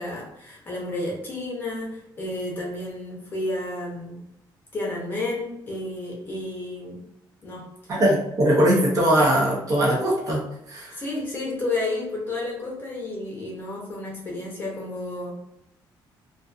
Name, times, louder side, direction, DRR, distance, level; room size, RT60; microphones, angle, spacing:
voice 1, 0.0-4.2 4.7-7.0 7.4-7.9 10.9-15.3, left 2 dB, 25° left, -3 dB, 0.7 m, -31 dB
voice 2, 7.9-11.0, right 1 dB, 40° right, -2 dB, 0.7 m, -21 dB
2.3 x 2.3 x 2.4 m, 0.81 s
cardioid pair, 175°, 9 cm